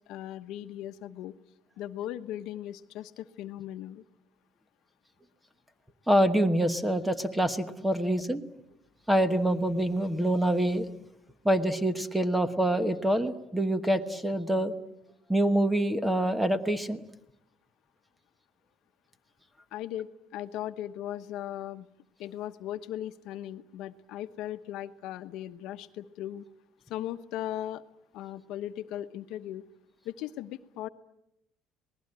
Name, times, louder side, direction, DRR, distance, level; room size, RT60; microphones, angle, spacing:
voice 1, 0.1-1.3 1.8-4.0 19.7-21.9 22.2-26.5 26.9-27.8 28.1-29.6 30.0-30.9, left 12 dB, 70° left, 10 dB, 1.0 m, -38 dB
voice 2, 6.1-8.4 9.1-10.9 11.4-14.7 15.3-17.0, right 1 dB, 5° right, 10 dB, 1.2 m, -26 dB
27.0 x 19.5 x 8.9 m, 0.83 s
cardioid pair, 155°, 0 cm